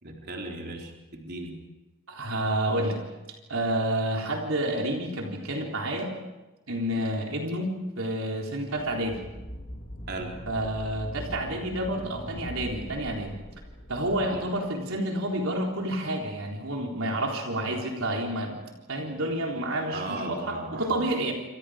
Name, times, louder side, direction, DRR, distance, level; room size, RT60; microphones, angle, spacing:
voice 1, 0.0-1.5 10.1-10.3 14.2-14.4 19.9-21.0, right 2 dB, 45° right, 0 dB, 4.2 m, -37 dB
voice 2, 2.1-3.0 3.5-6.1 6.7-9.2 10.5-13.3 13.9-18.6 18.9-21.3, right 1 dB, 70° right, 0 dB, 3.8 m, -29 dB
sound 1, 8.9-15.1, equal, 35° left, 3.9 m, -42 dB
28.5 x 27.0 x 5.1 m, 1.1 s
head